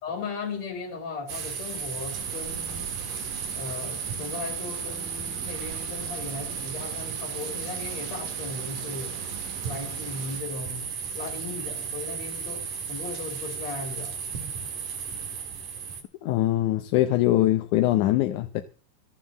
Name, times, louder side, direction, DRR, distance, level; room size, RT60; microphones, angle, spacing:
voice 1, 0.0-2.9 3.5-9.2 9.6-14.2, left 4 dB, 50° left, 4.3 m, -37 dB
sound 1, 1.3-16.0, right 6 dB, 65° right, 3.6 m, -34 dB
sound 2, 2.1-10.4, right 7 dB, 90° right, 3.2 m, -43 dB
voice 2, 16.2-18.6, left 14 dB, 75° left, 2.1 m, -22 dB
14.5 x 7.5 x 7.3 m
omnidirectional pair, 3.9 m